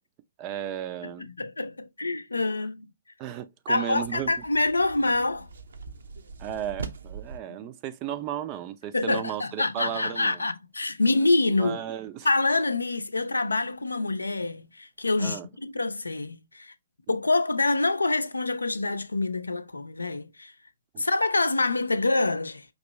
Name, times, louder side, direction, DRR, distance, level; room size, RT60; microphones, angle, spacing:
voice 1, 0.4-1.3 3.2-4.3 6.4-10.4 11.6-12.3 15.2-15.5 20.9-21.0, right 10 dB, 30° right, 0.5 m, -34 dB
voice 2, 1.0-2.9 3.7-5.5 7.5-7.6 8.9-11.8 12.2-16.7 17.1-20.5 21.0-22.7, left 2 dB, 75° left, 0.5 m, -26 dB
sound 1, 4.0-7.4, right 4 dB, 65° right, 0.7 m, -41 dB
5.3 x 2.9 x 2.9 m
figure-of-eight pair, 120°, 0 cm